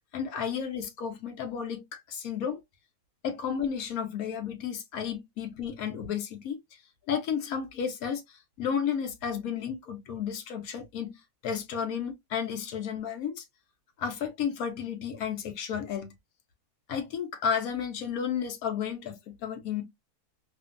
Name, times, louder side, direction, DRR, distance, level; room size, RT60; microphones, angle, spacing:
voice 1, 0.1-2.6 3.2-6.6 7.1-11.2 11.4-13.4 14.0-16.1 16.9-19.8, left 7 dB, 70° left, 1.0 m, -32 dB
2.8 x 2.5 x 2.4 m
omnidirectional pair, 1.7 m